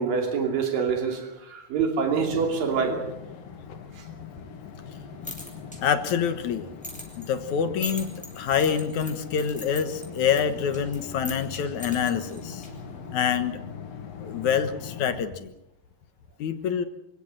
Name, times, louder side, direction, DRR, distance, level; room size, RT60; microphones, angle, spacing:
voice 1, 0.0-3.0 4.0-4.1, right 5 dB, 85° right, 3 dB, 4.6 m, -26 dB
sound 1, 2.0-15.2, left 6 dB, 80° left, 3.9 m, -41 dB
sound 2, 5.0-13.0, left 1 dB, ahead, 7.0 m, -43 dB
voice 2, 5.8-6.7 7.2-8.1 8.4-12.6 13.1-13.6 14.2-15.5 16.4-16.9, left 7 dB, 65° left, 10 dB, 2.6 m, -26 dB
26.5 x 17.0 x 7.7 m, 0.86 s
omnidirectional pair, 3.9 m